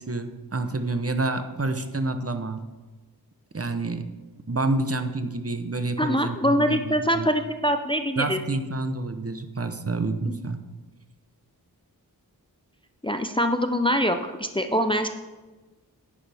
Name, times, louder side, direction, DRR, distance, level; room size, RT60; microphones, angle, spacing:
voice 1, 0.0-2.6 3.5-4.1 4.5-7.3 8.2-10.6, right 2 dB, 35° right, 8 dB, 0.8 m, -28 dB
voice 2, 6.0-8.4 10.3-10.4 13.0-15.1, equal, 15° left, 7 dB, 0.5 m, -24 dB
10.0 x 9.9 x 3.5 m, 1.2 s
wide cardioid pair, 65°, 39 cm